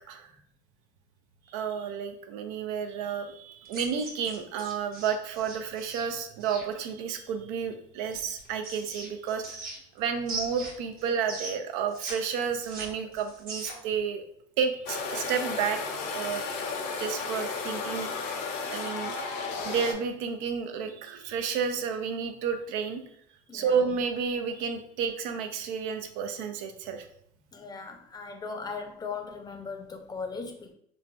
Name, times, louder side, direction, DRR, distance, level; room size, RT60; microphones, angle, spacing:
voice 1, 1.5-9.6 10.0-14.2 14.6-15.8 16.1-16.4 17.0-18.1 18.7-19.1 19.6-23.0 23.5-27.1, right 6 dB, 85° right, 7 dB, 0.4 m, -31 dB
sound 1, 3.7-6.7 8.1-10.0 10.3-12.1 12.4-13.9, right 2 dB, 55° right, 1.0 m, -39 dB
sound 2, 14.9-19.9, left 4 dB, 65° left, 0.5 m, -33 dB
voice 2, 27.5-30.7, left 4 dB, 25° left, 5 dB, 0.5 m, -38 dB
3.1 x 2.2 x 2.5 m, 0.67 s
supercardioid pair, 105°, 17 cm